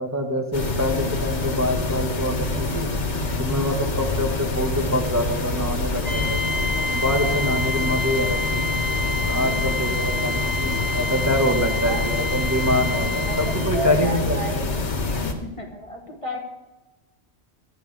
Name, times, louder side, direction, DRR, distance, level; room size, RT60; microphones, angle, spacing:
voice 1, 0.0-2.9 3.4-6.5 6.9-8.7 9.2-14.6, left 1 dB, 15° right, 0 dB, 1.8 m, -25 dB
sound 1, 0.5-15.3, left 2 dB, 90° left, 1.9 m, -26 dB
sound 2, 6.0-13.8, left 2 dB, 55° left, 4.7 m, -28 dB
voice 2, 11.9-12.3 13.3-16.4, right 1 dB, 30° left, 1 dB, 1.8 m, -33 dB
24.5 x 10.0 x 3.6 m, 1.1 s
omnidirectional pair, 1.2 m